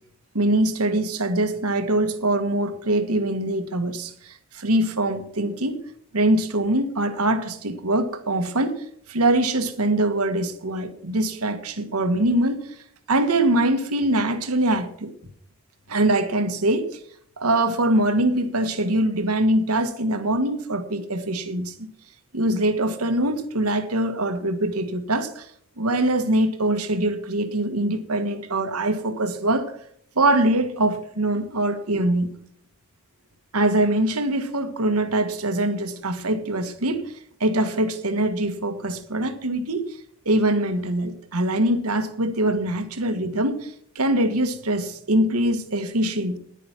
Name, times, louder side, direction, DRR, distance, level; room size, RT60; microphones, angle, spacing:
voice 1, 0.3-5.8 6.1-8.8 9.1-12.7 13.1-15.1 15.9-16.9 17.4-21.9 22.3-25.5 25.8-29.7 30.1-32.3 33.5-37.1 37.4-40.0 40.2-46.4, right 1 dB, 90° right, 1.5 m, -23 dB
10.5 x 10.0 x 5.9 m
head